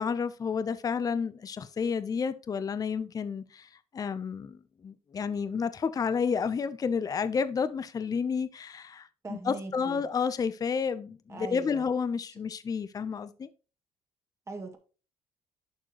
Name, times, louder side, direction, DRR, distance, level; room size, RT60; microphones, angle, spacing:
voice 1, 0.0-13.5, left 6 dB, 30° left, 0.6 m, -31 dB
voice 2, 9.2-10.0 11.3-11.8 14.5-14.8, right 3 dB, 25° right, 2.1 m, -40 dB
11.0 x 4.4 x 2.9 m
cardioid pair, 105°, 12 cm